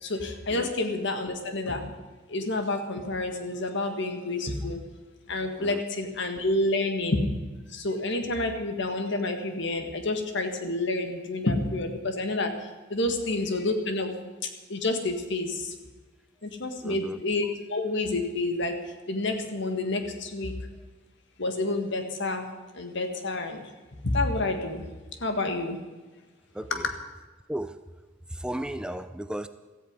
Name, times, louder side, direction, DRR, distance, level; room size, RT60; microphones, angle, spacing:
voice 1, 0.0-1.9 2.3-4.8 5.3-7.2 7.7-14.1 14.7-15.7 16.4-18.8 19.1-20.6 21.4-22.5 22.7-23.7 24.0-24.8 25.2-25.8 26.7-26.9, left 2 dB, 65° left, 6 dB, 1.8 m, -29 dB
voice 2, 16.8-17.2 26.5-26.9 27.5-27.8 28.3-29.5, right 1 dB, 5° right, 10 dB, 0.4 m, -35 dB
16.0 x 14.0 x 5.3 m, 1.3 s
head